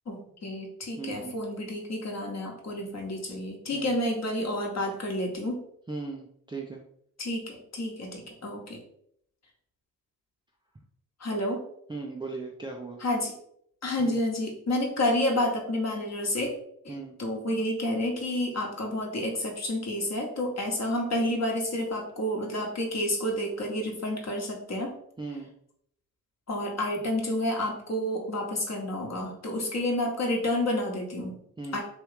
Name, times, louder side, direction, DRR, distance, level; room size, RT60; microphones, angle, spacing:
voice 1, 0.1-5.6 7.2-8.8 11.2-11.7 13.0-13.4 13.8-16.5 16.8-16.9 17.2-25.0 26.5-31.4 31.7-31.8, left 1 dB, 35° left, 0 dB, 1.2 m, -30 dB
voice 2, 1.0-1.4 3.7-4.0 5.9-6.8 11.9-13.0 14.0-14.2 16.9-17.1 25.2-25.5 31.6-31.8, right 3 dB, 10° right, 0 dB, 0.5 m, -37 dB
3.1 x 2.7 x 3.3 m, 0.70 s
hypercardioid pair, 45°, 44 cm